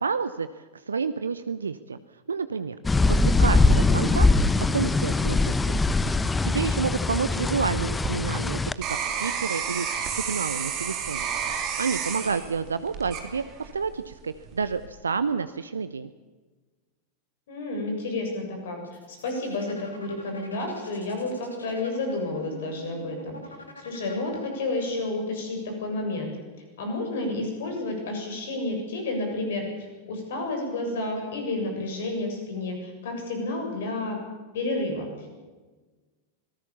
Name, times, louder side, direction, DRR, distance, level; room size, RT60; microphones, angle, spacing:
voice 1, 0.0-2.8 3.1-4.3 4.6-5.7 6.1-9.9 10.1-11.2 11.8-16.1, right 5 dB, 75° right, 14 dB, 0.7 m, -30 dB
sound 1, 2.8-8.7, left 3 dB, 10° left, 0.8 m, -22 dB
sound 2, 7.9-13.9 14.4-14.9, right 7 dB, 35° right, 3.5 m, -31 dB
voice 2, 17.5-23.4 23.8-26.3 26.8-34.2 34.5-35.3, left 2 dB, 60° left, 3 dB, 7.3 m, -31 dB
sound 3, 18.8-25.0, left 1 dB, 80° left, 3.3 m, -46 dB
25.0 x 18.5 x 7.1 m, 1.3 s
figure-of-eight pair, 90°, 0 cm